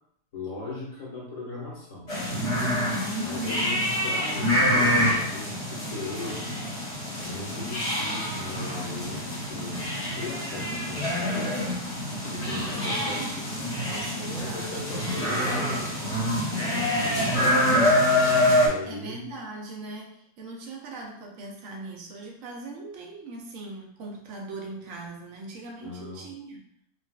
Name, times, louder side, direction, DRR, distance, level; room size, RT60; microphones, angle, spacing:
voice 1, 0.3-2.1 3.2-6.6 7.2-11.5 12.2-13.5 14.2-19.2 25.8-26.3, left 2 dB, 70° left, -6 dB, 1.5 m, -38 dB
sound 1, 2.1-18.7, left 1 dB, 55° left, 1.2 m, -26 dB
voice 2, 2.6-3.5 12.5-13.4 13.9-15.0 18.9-26.6, right 2 dB, 75° right, 0 dB, 1.1 m, -40 dB
3.7 x 2.4 x 2.3 m, 0.69 s
omnidirectional pair, 1.4 m